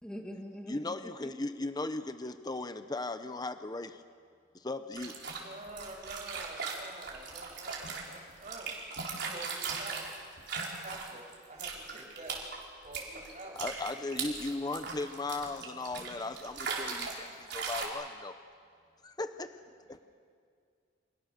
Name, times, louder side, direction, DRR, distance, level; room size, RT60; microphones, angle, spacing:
voice 1, 0.0-1.5, equal, 5° left, 2 dB, 1.9 m, -44 dB
voice 2, 0.7-4.0 4.5-5.2 13.5-18.3 19.0-19.5 19.9-20.0, left 2 dB, 20° left, 10 dB, 0.9 m, -37 dB
sound 1, 4.9-11.3 11.6-17.2 17.5-17.8, right 5 dB, 60° right, 4.7 m, -38 dB
voice 3, 5.4-8.8 9.1-10.0 10.6-12.4 12.8-13.6, right 2 dB, 40° right, 0 dB, 6.5 m, -47 dB
29.5 x 27.5 x 6.6 m, 2.2 s
head